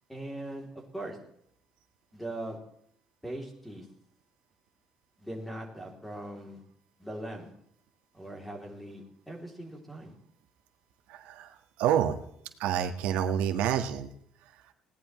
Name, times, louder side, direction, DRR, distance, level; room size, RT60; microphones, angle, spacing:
voice 1, 0.1-1.2 2.1-2.6 3.2-3.9 5.2-6.6 7.0-7.5 8.1-10.1, right 1 dB, 5° left, 1 dB, 3.1 m, -40 dB
voice 2, 11.1-12.2 12.6-14.1 14.4-14.7, right 9 dB, 80° right, 5 dB, 1.6 m, -29 dB
20.0 x 17.5 x 3.2 m, 0.70 s
cardioid pair, 175°, 2 cm